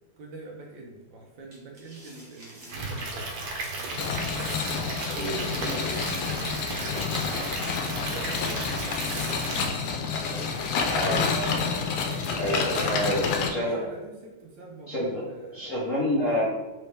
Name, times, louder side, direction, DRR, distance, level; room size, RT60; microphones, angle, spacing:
voice 1, 0.2-3.3 3.8-4.0 4.7-9.3 10.2-10.6 11.2-13.3 13.7-15.7 16.2-16.4, right 2 dB, 70° right, 0 dB, 1.2 m, -43 dB
sound 1, 1.5-2.8 3.2-3.4 4.3-4.7 5.4-6.5 7.4-8.0 8.5-8.6 8.9-9.3 10.2-11.3 11.6-11.9 12.1-13.0, right 1 dB, 40° right, 1.2 m, -46 dB
Stream / Liquid, 2.7-9.7, right 2 dB, 85° right, 1.7 m, -34 dB
sound 2, 4.0-13.5, left 5 dB, 85° left, 1.5 m, -29 dB
voice 2, 5.1-5.8 9.2-9.3 10.9-11.3 12.3-13.8 14.9-15.2 15.5-16.6, equal, 65° left, -6 dB, 0.7 m, -28 dB
4.1 x 3.2 x 3.3 m, 1.1 s
omnidirectional pair, 2.4 m